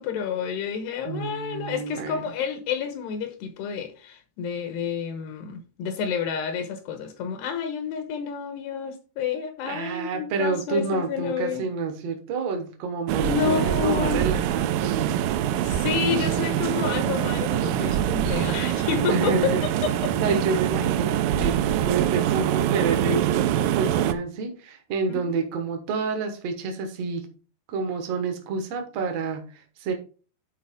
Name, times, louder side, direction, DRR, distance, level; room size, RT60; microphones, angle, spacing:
voice 1, 0.0-11.7 13.2-14.3 15.6-20.1 25.1-25.4, left 7 dB, 80° left, 7 dB, 3.1 m, -29 dB
voice 2, 1.1-2.3 9.6-15.3 19.1-19.6 20.1-27.3 27.7-29.9, right 4 dB, 75° right, 5 dB, 1.5 m, -29 dB
sound 1, 13.1-24.1, right 11 dB, 90° right, 2.0 m, -24 dB
11.0 x 4.5 x 3.6 m, 0.37 s
omnidirectional pair, 4.8 m